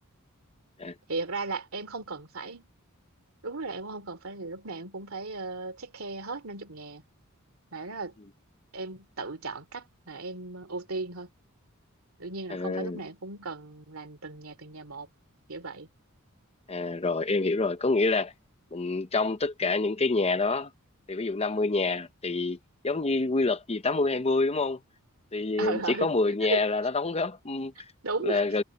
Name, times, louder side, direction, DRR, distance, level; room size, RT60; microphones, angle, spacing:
voice 1, 1.1-2.7 3.4-7.0 7.7-8.2 8.7-11.3 12.2-15.1 15.5-15.9 25.6-26.1 26.5-26.6 28.0-28.4, right 3 dB, 70° right, 2.8 m, -36 dB
voice 2, 12.5-13.0 16.7-18.3 18.7-20.7 21.1-22.6 22.8-24.8 25.3-27.8 28.2-28.6, left 3 dB, 30° left, 0.8 m, -27 dB
head